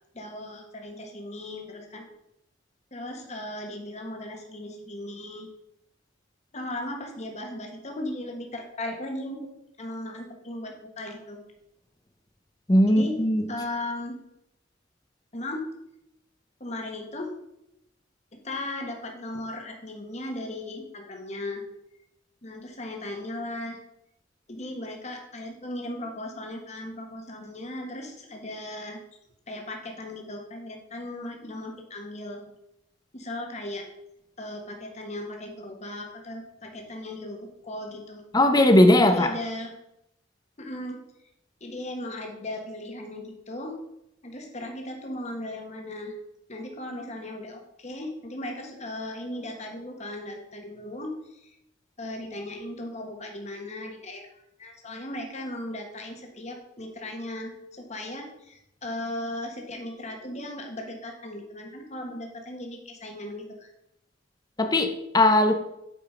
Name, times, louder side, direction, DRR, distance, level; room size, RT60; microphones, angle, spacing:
voice 1, 0.1-2.0 2.9-5.5 6.5-9.5 9.8-11.4 12.9-13.1 13.5-14.2 15.3-15.6 16.6-17.3 18.3-21.6 22.4-23.8 24.5-29.0 29.5-32.4 33.1-33.8 34.4-38.2 39.0-39.7 40.6-41.0 41.6-43.8 44.2-46.1 46.5-51.5 52.0-54.2 54.6-63.7, left 1 dB, 35° left, 2 dB, 1.4 m, -37 dB
voice 2, 12.7-13.4 38.3-39.3 64.6-65.5, left 1 dB, 20° left, 7 dB, 0.7 m, -19 dB
8.5 x 5.0 x 5.0 m, 0.82 s
head